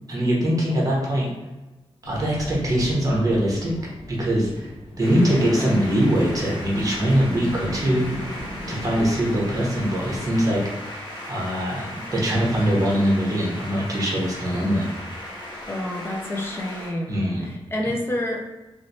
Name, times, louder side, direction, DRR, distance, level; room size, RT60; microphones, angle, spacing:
voice 1, 0.1-1.3 2.0-3.7 4.1-4.7 5.0-8.1 8.7-10.6 11.3-14.9 17.1-17.4, equal, 35° right, -4 dB, 1.0 m, -22 dB
sound 1, 2.0-10.6, left 1 dB, 85° left, 0.7 m, -37 dB
sound 2, 5.0-16.9, left 1 dB, 45° left, 1.1 m, -37 dB
voice 2, 5.1-5.9 15.7-18.4, left 1 dB, 25° left, -1 dB, 0.5 m, -29 dB
3.1 x 3.0 x 2.7 m, 1.1 s
wide cardioid pair, 135°, 10 cm